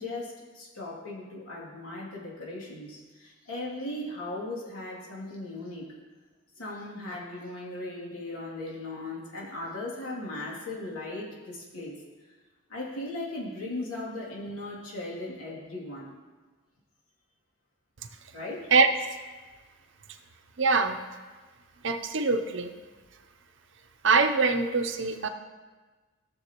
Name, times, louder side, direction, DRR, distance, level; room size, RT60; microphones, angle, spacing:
voice 1, 0.0-5.9 6.6-12.0 12.7-16.1 18.3-18.7, left 2 dB, 85° left, -4 dB, 2.7 m, -38 dB
voice 2, 20.6-21.0 21.8-22.7 24.0-25.3, right 4 dB, 55° right, 7 dB, 0.6 m, -23 dB
16.5 x 6.9 x 3.0 m, 1.3 s
head